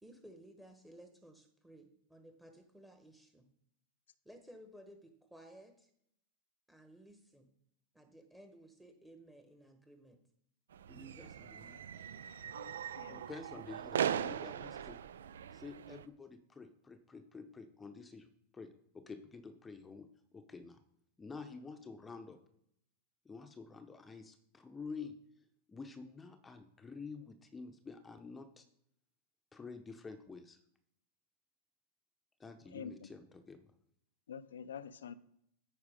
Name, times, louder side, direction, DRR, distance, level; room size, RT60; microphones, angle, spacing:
voice 1, 0.0-3.5 4.2-5.9 6.7-7.5 7.9-10.2 10.9-11.9 12.4-14.4, right 1 dB, 5° right, 6 dB, 1.1 m, -57 dB
sound 1, 10.7-16.0, right 9 dB, 85° right, 0.4 m, -40 dB
voice 2, 12.5-13.1 32.7-33.1 34.3-35.1, left 7 dB, 85° left, 15 dB, 0.5 m, -47 dB
voice 3, 13.3-15.0 15.5-18.3 18.5-20.8 21.2-22.4 23.2-25.1 25.7-28.6 29.5-30.6 32.4-33.7, left 4 dB, 15° left, 8 dB, 0.7 m, -49 dB
8.9 x 4.8 x 5.0 m, 0.74 s
hypercardioid pair, 110°, 0 cm